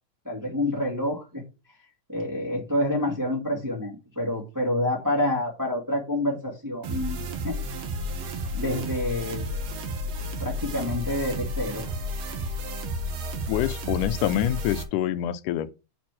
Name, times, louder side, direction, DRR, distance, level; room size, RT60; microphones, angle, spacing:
voice 1, 0.2-1.4 2.1-7.6 8.5-9.6 10.4-11.9, left 1 dB, 5° right, 1.6 m, -28 dB
sound 1, 6.8-14.8, equal, 60° right, 2.0 m, -32 dB
voice 2, 13.5-15.7, left 12 dB, 85° left, 2.1 m, -26 dB
6.7 x 4.3 x 6.0 m
omnidirectional pair, 3.6 m